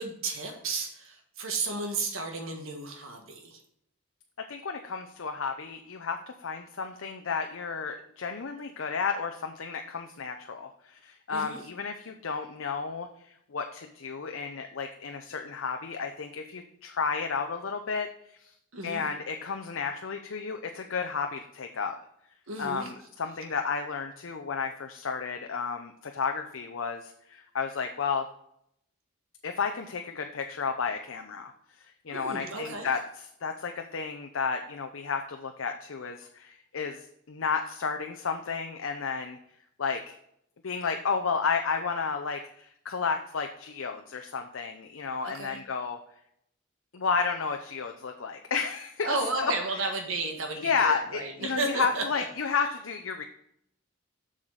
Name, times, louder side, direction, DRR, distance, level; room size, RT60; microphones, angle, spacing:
voice 1, 0.0-3.6 11.3-11.6 18.7-19.1 22.5-22.9 32.1-32.9 45.2-45.6 49.0-52.2, right 3 dB, 80° right, 4 dB, 1.5 m, -33 dB
voice 2, 4.5-13.1 13.5-18.1 18.4-18.5 18.8-21.9 22.6-28.3 29.4-31.5 31.8-39.4 39.8-40.2 40.6-46.0 46.9-49.5 50.6-53.2, left 5 dB, 75° left, 5 dB, 0.6 m, -32 dB
7.4 x 6.4 x 3.9 m, 0.73 s
head